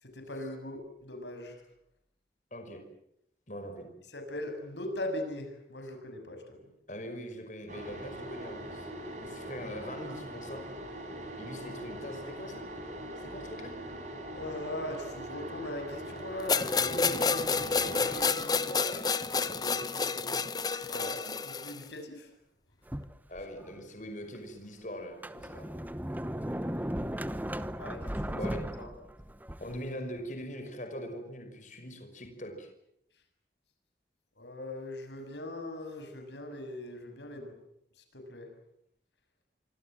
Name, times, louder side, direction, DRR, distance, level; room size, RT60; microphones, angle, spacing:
voice 1, 0.0-1.6 4.1-6.6 14.3-16.9 20.8-22.3 27.8-28.4 28.8-28.9 34.4-37.5 38.1-38.5, left 1 dB, 85° left, 6 dB, 7.0 m, -40 dB
voice 2, 2.5-2.8 3.5-3.9 6.9-8.9 9.2-10.6 11.4-12.7 13.2-13.7 16.8-20.4 23.3-25.7 28.4-28.6 29.6-32.7, equal, 45° left, 6 dB, 5.6 m, -42 dB
sound 1, 7.7-18.3, right 1 dB, 40° right, 5.8 m, -42 dB
sound 2, 16.5-21.8, left 5 dB, 20° left, 1.0 m, -29 dB
Sliding door, 22.9-23.8 24.3-24.4 25.0-29.9, equal, 10° right, 0.9 m, -36 dB
27.0 x 25.0 x 7.7 m, 0.77 s
head